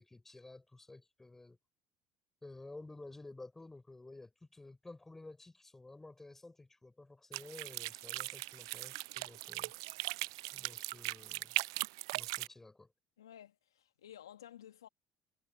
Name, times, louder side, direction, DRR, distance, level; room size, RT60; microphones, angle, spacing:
voice 1, 0.0-1.6 2.4-9.7 10.5-11.6 12.1-12.9, left 2 dB, 15° left, 4.3 m, -53 dB
sound 1, 7.3-12.5, right 23 dB, 75° right, 0.5 m, -39 dB
voice 2, 13.2-14.9, left 10 dB, 85° left, 1.7 m, -54 dB
hypercardioid pair, 60°, 2 cm